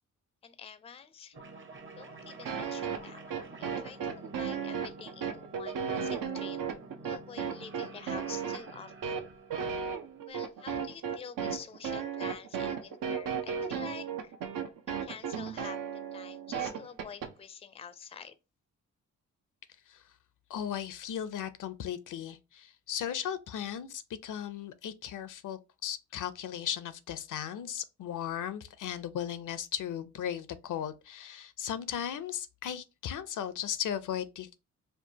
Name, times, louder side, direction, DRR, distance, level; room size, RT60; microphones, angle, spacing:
voice 1, 0.4-1.4 1.9-6.6 7.0-9.2 10.3-14.3 14.9-15.8 16.1-18.4, left 7 dB, 20° left, 0.4 m, -47 dB
sound 1, 1.3-10.3, right 2 dB, 40° right, 0.8 m, -50 dB
sound 2, 2.5-17.3, right 7 dB, 80° right, 0.7 m, -35 dB
voice 2, 20.5-34.6, left 9 dB, 70° left, 0.5 m, -36 dB
4.5 x 2.4 x 2.7 m
cardioid pair, 90°, 32 cm